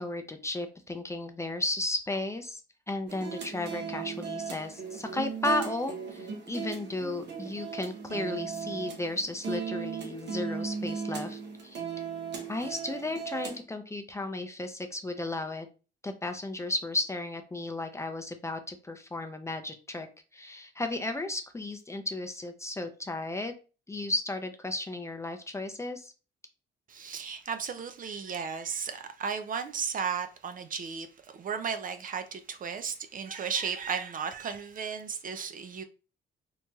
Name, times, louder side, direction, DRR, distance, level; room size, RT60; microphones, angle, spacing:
voice 1, 0.0-2.6 2.9-11.8 12.5-15.7 16.0-20.1 20.3-23.5 23.9-26.1, left 2 dB, 15° left, 0.4 m, -34 dB
sound 1, 3.1-13.6, right 6 dB, 60° right, 0.9 m, -37 dB
voice 2, 26.9-35.8, right 6 dB, 45° right, 0.4 m, -35 dB
2.9 x 2.8 x 2.3 m
cardioid pair, 90°, 20 cm